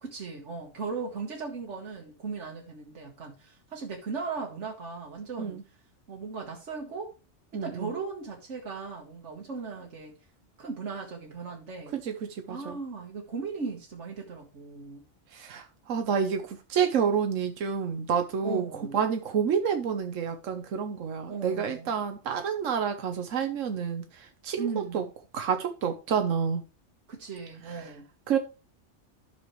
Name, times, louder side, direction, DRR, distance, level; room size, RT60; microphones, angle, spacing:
voice 1, 0.0-5.6 6.1-7.1 7.5-10.2 10.6-12.0 12.5-15.0 18.4-19.0 21.3-22.0 24.6-25.1 27.1-28.1, right 4 dB, 70° right, 1.8 m, -37 dB
voice 2, 7.5-7.9 11.9-12.8 15.3-24.7 24.9-25.0 25.3-26.6 27.7-27.8 28.3-28.4, right 7 dB, 85° right, 1.3 m, -29 dB
12.0 x 6.1 x 3.1 m
omnidirectional pair, 1.3 m